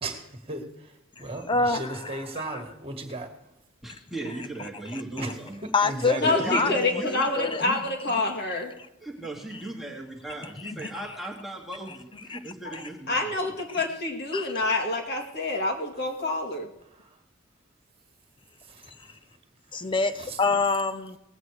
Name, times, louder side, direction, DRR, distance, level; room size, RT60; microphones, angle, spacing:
voice 1, 0.0-0.6 1.2-3.3 5.2-5.3 5.8-6.3 18.7-18.9 20.2-20.4, right 2 dB, 30° right, 1.8 m, -35 dB
voice 2, 1.5-2.6 4.9-5.0 5.7-7.7 12.3-12.4 14.3-14.6 19.7-21.2, left 3 dB, 25° left, 0.5 m, -27 dB
voice 3, 3.8-5.6 6.2-7.1 9.0-13.5, right 2 dB, ahead, 1.5 m, -37 dB
voice 4, 6.1-8.7 12.6-12.7 13.1-16.7, left 2 dB, 55° left, 2.2 m, -27 dB
19.5 x 8.3 x 4.8 m
head